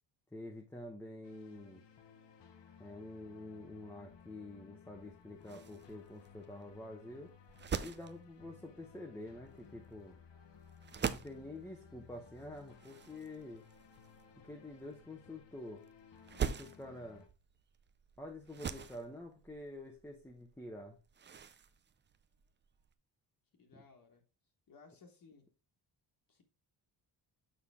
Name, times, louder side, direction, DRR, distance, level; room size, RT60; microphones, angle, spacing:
voice 1, 0.3-1.8 2.8-7.3 7.8-10.2 11.1-13.6 14.4-15.8 16.4-17.3 18.2-21.0 23.7-23.8, left 1 dB, 5° left, 0.8 m, -48 dB
sound 1, 1.2-17.3, left 7 dB, 75° left, 1.2 m, -59 dB
sound 2, 5.0-22.9, right 7 dB, 25° right, 0.4 m, -45 dB
voice 2, 23.6-24.2 24.7-25.5 26.3-26.4, left 4 dB, 50° left, 1.5 m, -60 dB
6.7 x 5.6 x 3.5 m
wide cardioid pair, 150°, 43 cm